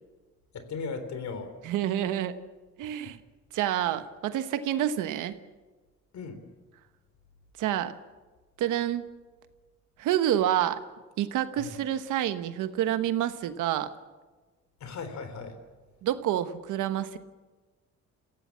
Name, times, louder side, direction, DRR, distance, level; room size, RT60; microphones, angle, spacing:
voice 1, 0.5-1.5 6.1-6.4 11.6-11.7 14.8-15.6, left 4 dB, 65° left, 9 dB, 3.7 m, -37 dB
voice 2, 1.6-2.3 2.8-3.2 3.5-5.3 7.6-7.9 8.6-9.1 10.0-10.8 11.2-13.9 16.0-17.2, right 11 dB, 90° right, 11 dB, 1.3 m, -28 dB
29.0 x 16.5 x 7.5 m, 1.3 s
cardioid pair, 90°, 30 cm